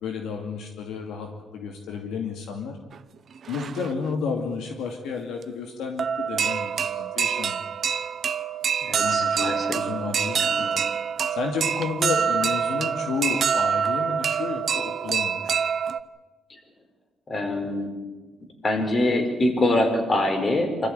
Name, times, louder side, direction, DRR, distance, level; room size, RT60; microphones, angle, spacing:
voice 1, 0.0-2.8 3.5-7.6 9.0-10.8 11.3-15.6, left 5 dB, 80° left, 3 dB, 2.5 m, -31 dB
sound 1, 2.9-3.0 3.4-4.1 5.4-5.5 6.0-16.0, right 7 dB, 55° right, 0.8 m, -26 dB
voice 2, 8.8-9.8 10.3-10.8 17.3-17.9 18.6-20.9, left 1 dB, 35° left, 4 dB, 5.2 m, -24 dB
25.5 x 14.0 x 9.9 m, 1.3 s
cardioid pair, 90°, 0 cm